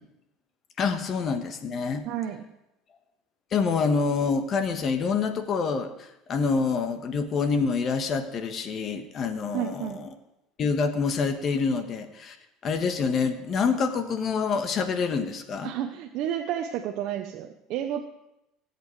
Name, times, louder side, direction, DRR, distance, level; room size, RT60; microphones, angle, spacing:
voice 1, 0.8-2.0 3.5-5.9 6.3-10.1 10.6-12.4 12.6-15.7, left 5 dB, 40° left, 8 dB, 1.4 m, -26 dB
voice 2, 2.0-2.5 9.5-10.0 15.6-18.1, right 10 dB, 60° right, 4 dB, 0.8 m, -31 dB
19.0 x 8.2 x 3.3 m, 0.87 s
supercardioid pair, 105°, 0 cm